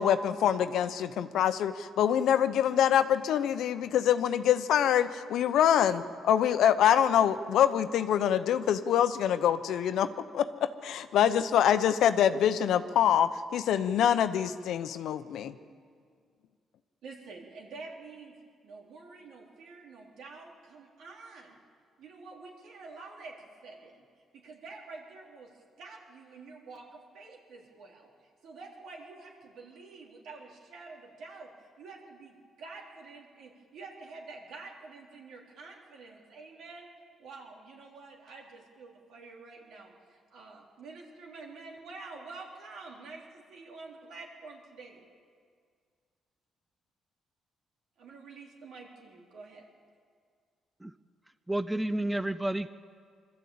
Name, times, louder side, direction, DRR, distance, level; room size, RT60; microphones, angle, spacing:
voice 1, 0.0-10.1 10.3-15.5, left 9 dB, 80° left, 11 dB, 0.8 m, -25 dB
voice 2, 17.0-18.4 18.6-21.6 22.0-24.1 24.3-28.1 28.4-36.9 37.2-45.0 48.0-49.6, right 3 dB, 75° right, -1 dB, 3.7 m, -48 dB
voice 3, 51.5-52.7, right 1 dB, 10° right, 12 dB, 0.5 m, -30 dB
22.5 x 13.5 x 8.6 m, 2.1 s
cardioid pair, 90°, 0 cm